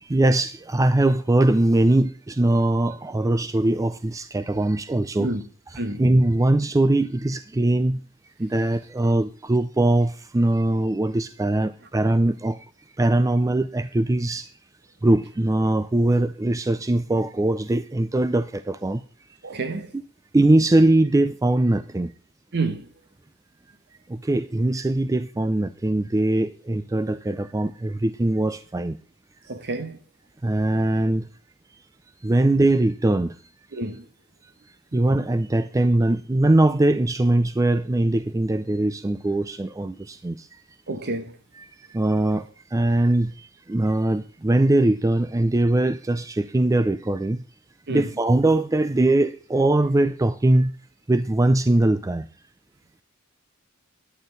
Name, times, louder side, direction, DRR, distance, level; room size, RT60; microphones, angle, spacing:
voice 1, 0.0-5.3 5.7-8.0 8.4-12.7 13.0-14.5 15.0-19.0 20.3-22.1 24.1-29.0 30.4-31.3 32.2-33.4 34.9-40.6 41.5-47.4 47.9-50.7 51.1-52.3, right 1 dB, 15° right, 0.4 m, -21 dB
voice 2, 19.4-19.9 22.5-22.9 29.5-30.0 33.7-34.1 40.9-41.3 47.9-48.1, right 2 dB, 55° right, 1.2 m, -28 dB
11.0 x 9.2 x 3.9 m
head